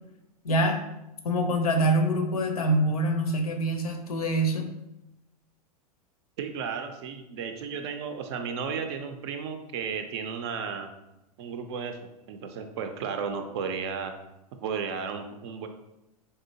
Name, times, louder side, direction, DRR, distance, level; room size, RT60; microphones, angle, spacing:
voice 1, 0.4-0.8 1.2-4.7, right 1 dB, 70° left, 4 dB, 0.6 m, -25 dB
voice 2, 6.4-10.9 11.4-14.1 14.6-15.7, right 6 dB, 45° right, 6 dB, 0.4 m, -34 dB
3.5 x 2.7 x 2.7 m, 0.90 s
figure-of-eight pair, 90°, 20 cm